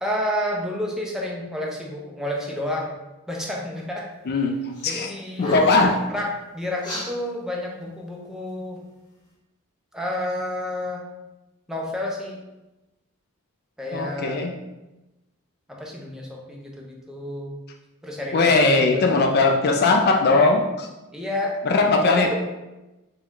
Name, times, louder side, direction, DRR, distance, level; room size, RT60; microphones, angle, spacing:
voice 1, 0.0-2.9 3.3-4.1 4.8-5.6 6.1-8.8 9.9-11.0 11.7-12.4 13.8-14.4 15.7-17.6 18.0-19.3 21.1-21.6 21.9-22.4, left 1 dB, 5° right, -2 dB, 0.6 m, -30 dB
voice 2, 4.3-4.6 4.8-5.1 5.4-6.0 13.9-14.5 18.3-20.9 21.7-22.4, left 3 dB, 45° left, 3 dB, 0.4 m, -19 dB
sound 1, 4.7-5.0 5.3-5.9 6.8-7.1, equal, 20° left, 1.1 m, -31 dB
4.8 x 2.3 x 3.7 m, 1.0 s
head